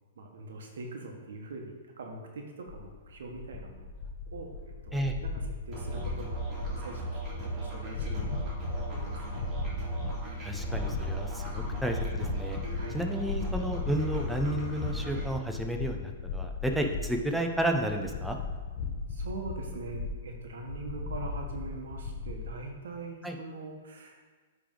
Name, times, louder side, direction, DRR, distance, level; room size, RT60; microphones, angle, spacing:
voice 1, 0.2-3.9 4.3-4.5 4.8-6.4 6.7-9.4 12.8-13.0 19.1-24.2, right 3 dB, 75° right, 2 dB, 1.2 m, -42 dB
sound 1, 2.7-22.5, left 4 dB, 50° left, 0.7 m, -37 dB
Musical instrument, 5.7-15.3, right 2 dB, 15° right, 1.9 m, -38 dB
voice 2, 10.4-12.6 12.9-18.4 23.2-23.4, right 1 dB, ahead, 3 dB, 0.5 m, -32 dB
9.2 x 3.4 x 3.8 m, 1.4 s
hypercardioid pair, 150°, 0 cm